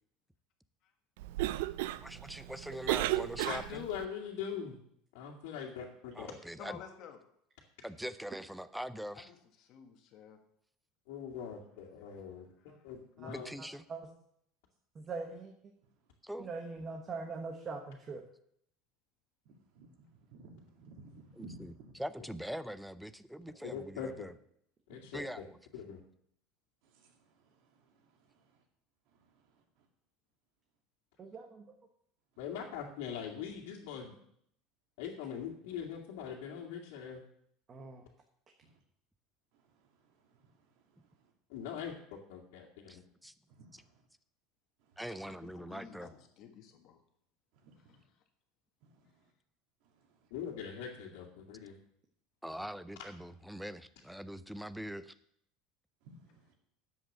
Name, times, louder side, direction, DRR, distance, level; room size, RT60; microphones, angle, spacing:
Cough, 1.2-4.1, right 15 dB, 80° right, 0.5 m, -35 dB
voice 1, 2.0-3.9 6.1-6.8 7.8-9.3 13.3-13.8 16.2-16.5 21.4-24.3 25.1-25.6 42.9-43.3 45.0-46.1 52.4-55.1, equal, ahead, 14 dB, 0.4 m, -43 dB
voice 2, 3.4-4.8 5.1-6.3 11.1-12.5 12.8-13.5 23.6-24.3 24.9-25.2 25.7-26.0 32.4-34.2 35.0-37.2 41.5-43.0 50.3-51.7, left 7 dB, 75° left, -3 dB, 2.2 m, -42 dB
voice 3, 6.6-7.2 9.1-10.4 12.7-12.8 45.1-47.0, left 8 dB, 40° left, 5 dB, 1.6 m, -52 dB
voice 4, 13.6-14.1 14.9-15.5 16.4-18.2 31.2-31.7 37.7-38.0, right 4 dB, 20° right, 3 dB, 1.1 m, -42 dB
voice 5, 19.4-21.9 24.9-25.1 26.8-28.6 29.1-29.9 38.6-38.8 39.5-41.3 43.5-44.0 44.8-45.0 47.5-48.0 48.8-49.3 49.8-50.3 56.0-56.5, right 2 dB, 55° right, 3 dB, 2.5 m, -58 dB
11.0 x 7.9 x 6.6 m, 0.70 s
cardioid pair, 175°, 0 cm